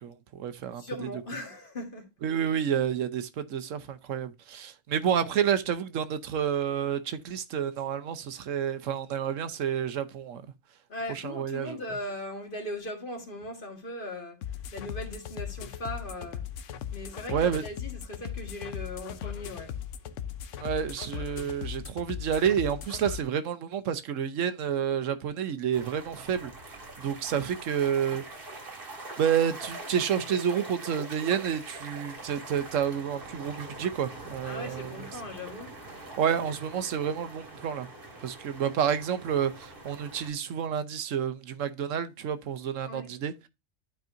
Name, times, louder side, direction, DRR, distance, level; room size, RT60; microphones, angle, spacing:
voice 1, 0.0-0.8 2.2-10.4 11.1-11.8 17.3-17.6 20.6-26.5 27.0-28.2 29.2-34.9 36.2-37.9 38.2-43.3, right 8 dB, 85° right, 1.1 m, -29 dB
voice 2, 0.7-2.1 10.9-14.4 14.7-16.4 16.9-19.8 34.4-35.7 42.9-43.1, left 1 dB, 45° left, 1.8 m, -39 dB
sound 1, 14.4-23.2, left 9 dB, 80° left, 1.0 m, -38 dB
sound 2, 25.7-40.3, right 2 dB, 45° right, 1.9 m, -44 dB
12.0 x 4.6 x 2.5 m
omnidirectional pair, 1.3 m